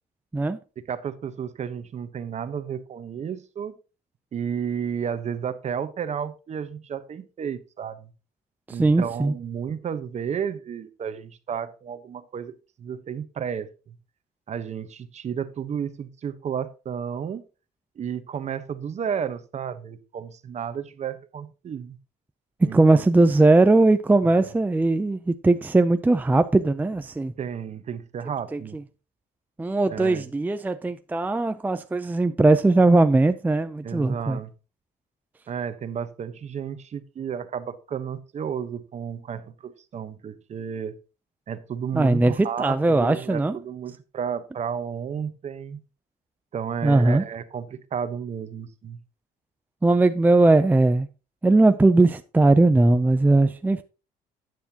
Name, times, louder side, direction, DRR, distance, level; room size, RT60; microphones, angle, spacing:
voice 1, 0.9-3.8 4.3-8.1 8.7-13.9 14.5-17.4 18.0-22.0 22.6-23.1 24.2-24.5 27.4-28.8 29.9-30.3 33.8-34.5 35.5-41.0 41.5-45.8 46.5-49.0, right 7 dB, 40° right, 1.0 m, -32 dB
voice 2, 8.7-9.3 22.7-27.3 28.5-28.6 29.6-34.4 41.9-43.6 46.8-47.2 49.8-51.1 51.4-53.8, right 2 dB, 10° right, 0.5 m, -19 dB
11.0 x 9.5 x 2.9 m
cardioid pair, 110°, 17 cm